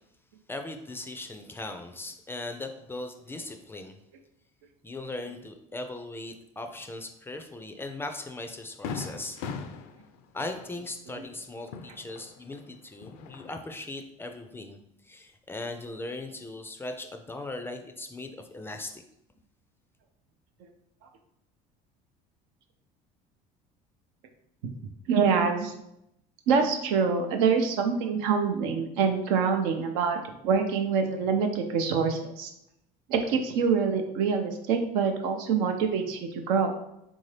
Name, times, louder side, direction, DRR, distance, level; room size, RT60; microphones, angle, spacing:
voice 1, 0.5-4.0 4.8-9.4 10.3-14.8 15.0-19.0, left 2 dB, 15° left, 5 dB, 0.3 m, -39 dB
Fireworks, 7.8-7.9 8.3-8.4 8.8-12.6 12.9-13.8, left 5 dB, 80° left, 0.4 m, -40 dB
voice 2, 25.1-25.7 26.5-30.2 30.4-32.5 33.1-36.7, right 5 dB, 85° right, 4 dB, 0.6 m, -25 dB
3.6 x 2.7 x 3.2 m, 0.79 s
supercardioid pair, 100°, 17 cm